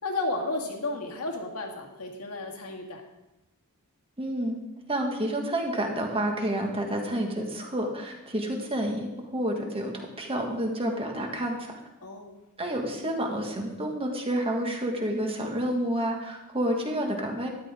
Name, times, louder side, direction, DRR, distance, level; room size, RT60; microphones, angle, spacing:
voice 1, 0.0-3.0 12.0-12.4, left 2 dB, 80° left, 1 dB, 2.0 m, -33 dB
voice 2, 4.2-4.6 4.9-11.7 12.6-17.5, right 1 dB, 25° right, 1 dB, 1.8 m, -29 dB
12.5 x 11.5 x 3.7 m, 0.97 s
head